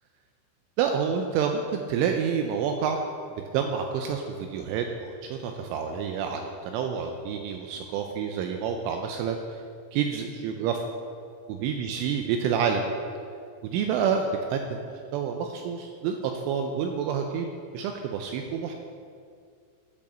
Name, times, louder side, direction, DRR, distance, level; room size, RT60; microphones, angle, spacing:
voice 1, 0.8-3.0 3.5-9.4 9.9-10.8 11.5-12.8 13.6-18.8, right 7 dB, 85° right, 4 dB, 2.9 m, -28 dB
12.0 x 5.1 x 6.8 m, 2.3 s
omnidirectional pair, 5.9 m